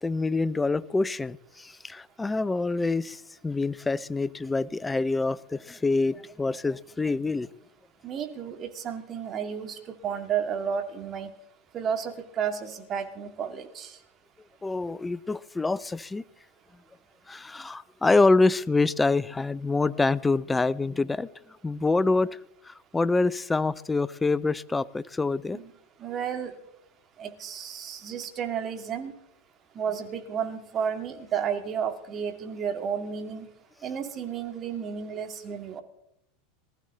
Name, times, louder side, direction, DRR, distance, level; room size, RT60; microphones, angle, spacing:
voice 1, 0.0-7.5 14.6-16.2 17.3-21.3 21.6-22.4 22.6-25.6, left 3 dB, 10° left, 19 dB, 0.6 m, -26 dB
voice 2, 8.0-11.3 11.7-13.9 25.5-25.7 26.0-26.5 27.2-29.1 29.8-33.5 33.8-35.8, right 7 dB, 35° right, 6 dB, 2.5 m, -32 dB
20.0 x 14.5 x 4.0 m, 0.78 s
figure-of-eight pair, 85°, 0 cm